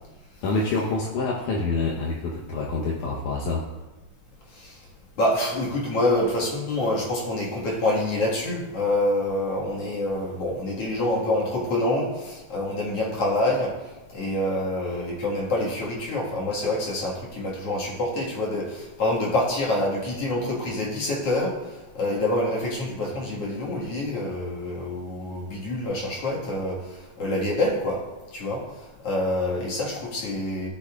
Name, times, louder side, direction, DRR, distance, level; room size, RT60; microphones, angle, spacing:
voice 1, 0.4-3.6, left 3 dB, 75° left, -4 dB, 2.4 m, -26 dB
voice 2, 5.2-13.7 14.1-21.6 21.9-26.8 27.2-28.0 28.3-28.6 29.0-30.7, left 1 dB, 55° left, -5 dB, 2.5 m, -26 dB
15.0 x 6.7 x 2.4 m, 1.1 s
omnidirectional pair, 3.6 m